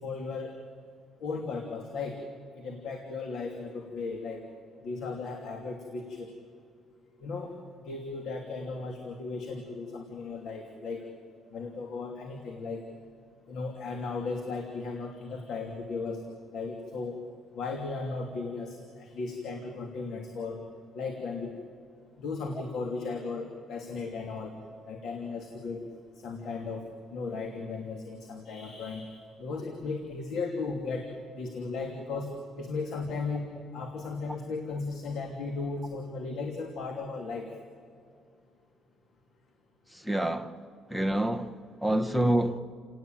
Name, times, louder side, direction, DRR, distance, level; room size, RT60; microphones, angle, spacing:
voice 1, 0.0-0.5 1.2-2.2 2.5-4.4 4.8-6.3 7.2-11.0 11.5-12.8 13.5-16.2 16.5-17.2 17.5-20.6 20.9-21.5 22.2-24.5 24.9-25.8 26.2-31.1 31.3-32.3 32.6-33.5 33.7-37.5, left 4 dB, 65° left, 2.8 m, -36 dB
voice 2, 39.9-40.5 40.9-41.5 41.8-42.6, right 1 dB, ahead, 1.1 m, -27 dB
29.5 x 18.5 x 9.1 m
cardioid pair, 155°, 0 cm